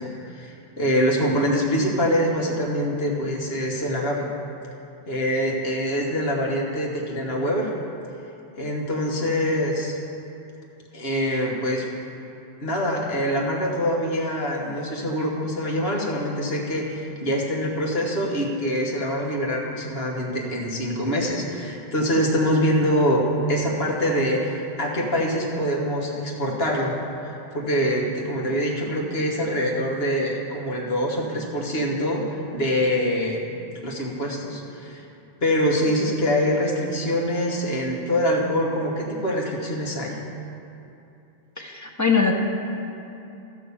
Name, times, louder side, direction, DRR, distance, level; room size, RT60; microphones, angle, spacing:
voice 1, 0.0-4.3 5.1-7.7 8.6-10.0 10.9-11.9 12.6-23.2 23.5-33.4 33.8-35.0 35.4-40.2, equal, 70° left, -1 dB, 1.7 m, -24 dB
voice 2, 41.6-42.4, left 5 dB, 15° left, 1 dB, 0.9 m, -21 dB
13.0 x 5.7 x 7.0 m, 2.8 s
omnidirectional pair, 1.1 m